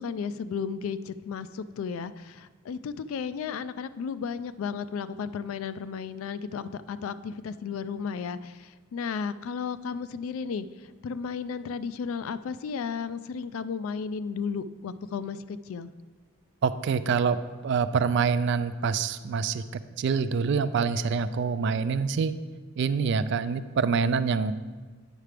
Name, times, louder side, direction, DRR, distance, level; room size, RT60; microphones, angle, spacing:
voice 1, 0.0-10.7 11.0-15.9, left 6 dB, 75° left, 14 dB, 0.3 m, -34 dB
voice 2, 16.6-17.4 17.6-19.6 20.0-22.4 22.8-24.5, right 5 dB, 55° right, 13 dB, 0.3 m, -26 dB
9.0 x 5.8 x 3.3 m, 1.4 s
head